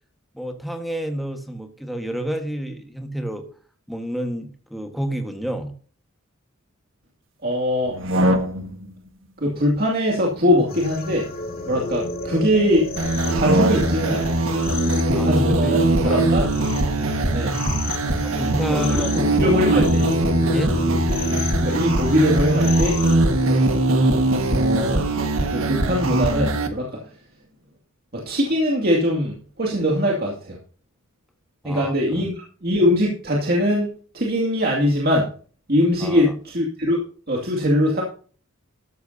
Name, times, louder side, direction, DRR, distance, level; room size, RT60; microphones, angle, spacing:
voice 1, 0.3-3.5 3.9-5.7 15.1-16.5 18.2-19.1 20.5-20.8 23.4-23.7 31.6-31.9 36.0-36.3, right 1 dB, ahead, 5 dB, 1.5 m, -29 dB
voice 2, 7.4-8.0 9.4-11.3 11.7-12.9 13.3-14.4 15.1-16.4 17.3-17.5 18.7-20.0 21.6-23.0 24.5-25.0 25.5-27.0 28.1-30.6 31.6-33.9 34.1-35.3 35.7-37.0 37.3-38.0, equal, 50° right, -1 dB, 2.4 m, -21 dB
sound 1, 7.8-8.9 10.2-11.9 13.2-14.2, equal, 65° right, 1.5 m, -25 dB
sound 2, 10.7-25.0, left 2 dB, 45° left, 2.5 m, -32 dB
sound 3, 13.0-26.7, right 2 dB, 80° right, 1.7 m, -21 dB
13.5 x 11.5 x 2.8 m, 0.41 s
head